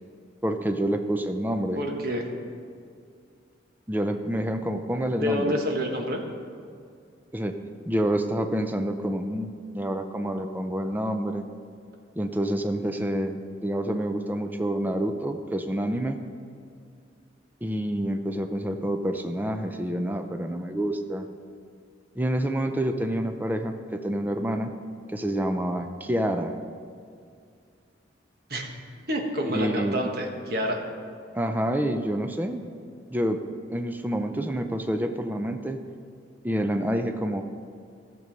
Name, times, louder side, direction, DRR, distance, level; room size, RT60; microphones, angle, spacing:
voice 1, 0.4-1.8 3.9-5.5 7.3-7.6 7.9-11.5 12.2-16.2 17.6-21.3 22.2-24.7 25.1-26.6 29.4-30.0 31.3-32.6 33.1-33.4 33.7-35.8 36.4-37.4, right 1 dB, 10° right, 6 dB, 0.5 m, -28 dB
voice 2, 1.8-2.2 5.1-6.2 28.5-28.7 29.1-30.8, equal, 50° right, 1 dB, 1.4 m, -28 dB
14.0 x 6.9 x 5.2 m, 2.3 s
head